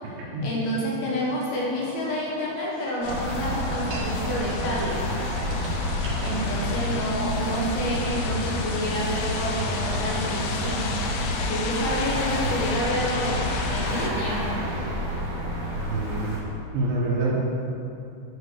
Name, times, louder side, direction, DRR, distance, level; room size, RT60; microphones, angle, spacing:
voice 1, 0.4-5.1 6.2-10.9 11.5-14.4, equal, 65° left, -5 dB, 3.1 m, -29 dB
sound 1, 1.4-5.1 5.5-6.4, right 2 dB, 55° right, 1.9 m, -42 dB
sound 2, 3.0-14.1, left 4 dB, 85° left, 3.0 m, -33 dB
sound 3, 3.0-16.4, equal, 40° right, 2.6 m, -29 dB
voice 2, 15.8-16.3 16.7-17.4, right 2 dB, 85° right, -8 dB, 3.5 m, -26 dB
9.6 x 4.8 x 6.7 m, 2.6 s
omnidirectional pair, 5.2 m